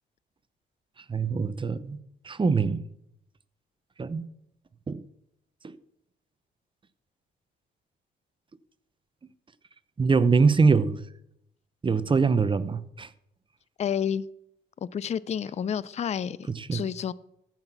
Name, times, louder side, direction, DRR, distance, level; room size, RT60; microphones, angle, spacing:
voice 1, 1.1-2.0 2.2-2.8 4.0-4.3 4.9-5.0 5.6-5.8 10.0-11.0 11.8-13.1 16.5-16.8, right 4 dB, 25° right, 0.7 m, -23 dB
voice 2, 13.8-14.3 14.8-16.4 16.7-17.1, left 8 dB, 35° left, 0.4 m, -29 dB
14.5 x 5.9 x 5.9 m
cardioid pair, 90°, 20 cm